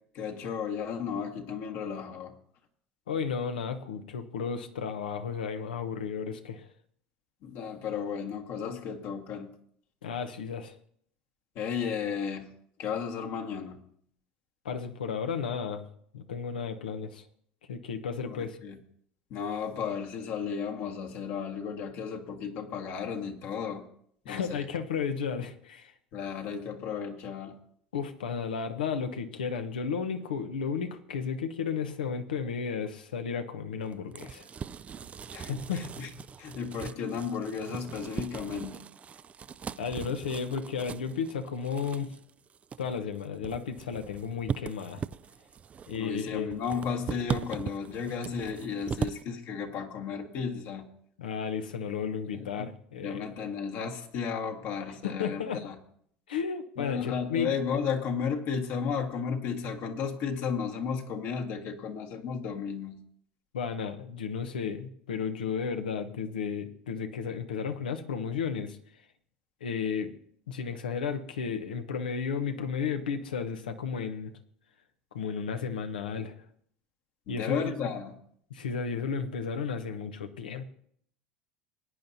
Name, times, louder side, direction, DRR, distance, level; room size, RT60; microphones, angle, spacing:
voice 1, 0.1-2.3 7.4-9.5 11.5-12.5 12.8-13.8 18.2-18.8 19.3-23.9 24.2-24.7 26.1-27.6 35.3-36.1 36.4-38.8 45.9-50.9 52.3-52.7 53.0-55.8 56.8-63.0 77.3-78.1, left 6 dB, 55° left, 3 dB, 1.5 m, -34 dB
voice 2, 3.1-6.7 10.0-10.7 14.6-15.9 16.1-17.3 17.7-18.6 24.3-25.9 27.9-34.5 35.5-35.9 39.8-42.1 42.8-45.0 45.9-46.5 51.2-53.3 55.0-55.6 56.3-57.5 63.5-68.8 69.6-70.1 70.5-74.3 75.1-76.3 77.3-77.9 78.5-80.6, left 6 dB, 85° left, 8 dB, 1.0 m, -33 dB
sound 1, 33.8-49.2, right 7 dB, 30° right, 0.4 m, -39 dB
20.5 x 9.2 x 2.8 m, 0.66 s
hypercardioid pair, 85°, 5 cm